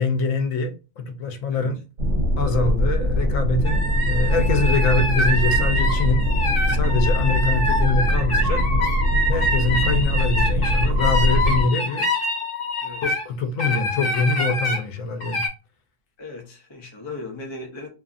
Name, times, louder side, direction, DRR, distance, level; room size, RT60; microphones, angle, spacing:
voice 1, 0.0-1.8 2.4-6.2 6.7-8.6 9.3-12.0 13.0-15.4, left 4 dB, 80° left, 1.0 m, -24 dB
sound 1, 2.0-11.6, equal, 70° right, 0.9 m, -21 dB
sound 2, 3.6-13.2 13.6-14.8 15.2-15.5, left 1 dB, 50° left, 0.9 m, -26 dB
voice 2, 12.8-13.2 16.2-17.9, left 3 dB, 35° left, 0.4 m, -37 dB
2.7 x 2.5 x 2.4 m
omnidirectional pair, 1.4 m